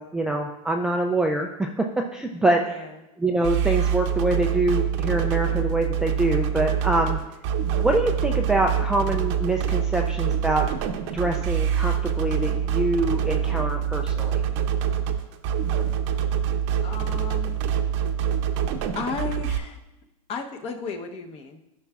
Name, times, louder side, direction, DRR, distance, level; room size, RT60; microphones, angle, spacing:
voice 1, 0.0-1.7 2.1-2.6 3.2-7.2 7.8-10.6 11.1-14.4, right 2 dB, 5° right, 1 dB, 0.3 m, -25 dB
voice 2, 2.6-2.9 16.8-17.6 18.9-19.8 20.3-21.6, left 5 dB, 30° left, 5 dB, 0.9 m, -34 dB
sound 1, 3.4-19.6, right 8 dB, 55° right, 0.7 m, -25 dB
13.5 x 5.6 x 2.4 m, 0.95 s
supercardioid pair, 135°, 19 cm